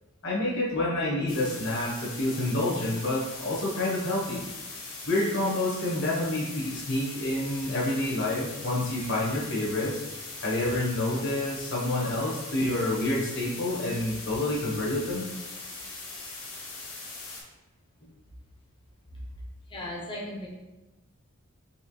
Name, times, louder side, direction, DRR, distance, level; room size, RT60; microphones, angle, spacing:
voice 1, 0.2-4.5 5.1-10.0 10.4-15.3, left 1 dB, 55° left, -5 dB, 1.3 m, -28 dB
sound 1, 1.3-17.4, left 3 dB, 75° left, 1.1 m, -41 dB
voice 2, 19.7-20.5, left 1 dB, 25° left, -3 dB, 0.9 m, -36 dB
4.3 x 3.2 x 3.2 m, 1.1 s
head